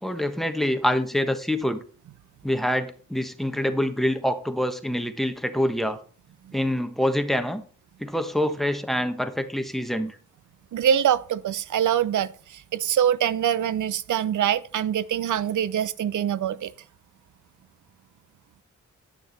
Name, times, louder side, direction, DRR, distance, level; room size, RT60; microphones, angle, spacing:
voice 1, 0.0-1.8 2.4-6.0 6.5-7.6 8.0-10.2, equal, ahead, 1.2 m, -26 dB
voice 2, 10.7-16.7, right 9 dB, 80° right, 0.5 m, -24 dB
10.0 x 6.5 x 4.1 m
cardioid pair, 55°, 30 cm